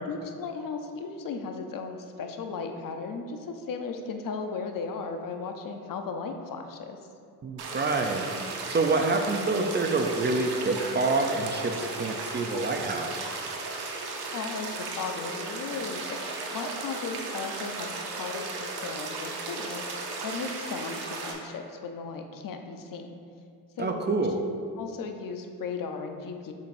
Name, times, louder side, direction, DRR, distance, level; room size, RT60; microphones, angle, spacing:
voice 1, 0.1-7.0 14.3-16.2 16.5-23.2 23.8-24.0 24.8-26.5, left 4 dB, 60° left, 5 dB, 0.6 m, -36 dB
voice 2, 7.4-8.3 8.7-13.3 23.8-24.3, right 3 dB, 30° right, 4 dB, 0.4 m, -27 dB
sound 1, 7.6-21.3, right 3 dB, 85° right, 1.0 m, -36 dB
7.3 x 5.8 x 2.6 m, 2.4 s
cardioid pair, 115°, 37 cm